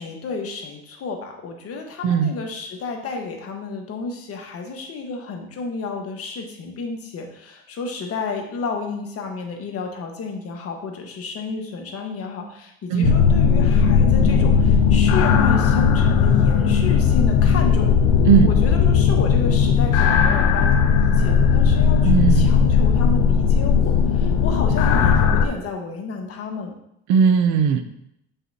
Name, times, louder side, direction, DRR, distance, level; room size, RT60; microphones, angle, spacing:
voice 1, 0.0-17.9 18.4-26.7, left 4 dB, 50° left, 3 dB, 1.4 m, -31 dB
sound 1, 13.0-25.5, left 6 dB, 80° left, 0.6 m, -17 dB
voice 2, 22.0-22.5 27.1-27.8, right 7 dB, 75° right, 10 dB, 0.7 m, -17 dB
7.3 x 5.5 x 2.8 m, 0.77 s
supercardioid pair, 90°, 30 cm